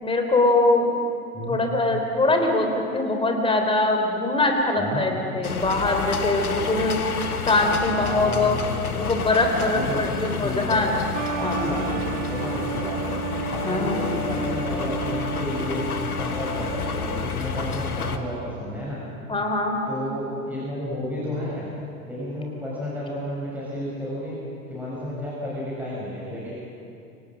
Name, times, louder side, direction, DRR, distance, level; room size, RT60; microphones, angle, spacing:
voice 1, 0.0-1.0 1.5-8.6 8.9-10.9 11.3-11.7 13.6-14.0 19.3-19.8, left 2 dB, 10° left, 4 dB, 3.8 m, -23 dB
sound 1, 5.4-18.2, left 5 dB, 75° left, 1.8 m, -30 dB
voice 2, 8.0-8.7 9.6-10.1 10.4-11.0 11.5-13.1 13.5-15.8 16.2-19.0 19.9-21.7 22.1-24.4 24.7-26.5, left 1 dB, 5° right, -8 dB, 7.1 m, -31 dB
sound 2, 11.1-17.4, right 7 dB, 55° right, 1.7 m, -32 dB
29.5 x 25.5 x 6.3 m, 2.6 s
figure-of-eight pair, 85°, 44 cm